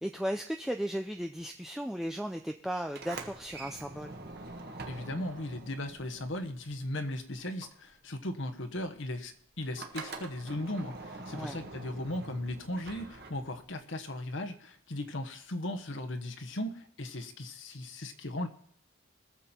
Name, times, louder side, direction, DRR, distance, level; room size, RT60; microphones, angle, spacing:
voice 1, 0.0-4.2 11.3-11.6, equal, ahead, 4 dB, 0.4 m, -35 dB
Sliding door, 2.8-7.1 7.4-13.8, right 3 dB, 50° right, 1.5 m, -45 dB
voice 2, 4.9-18.5, left 1 dB, 70° left, 6 dB, 1.3 m, -37 dB
21.5 x 7.3 x 4.4 m, 0.63 s
head